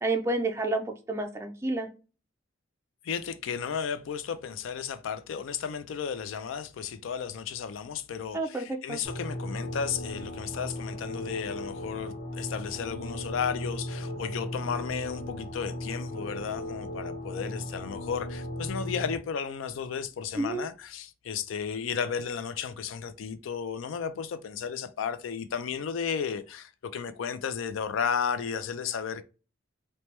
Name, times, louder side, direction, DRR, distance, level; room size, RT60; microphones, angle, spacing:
voice 1, 0.0-1.9 8.3-9.0 20.4-20.7, right 2 dB, 15° right, 0.3 m, -30 dB
voice 2, 3.0-29.2, left 7 dB, 75° left, 0.3 m, -34 dB
sound 1, 9.0-19.1, left 1 dB, 40° left, 0.9 m, -37 dB
3.1 x 2.1 x 2.9 m
head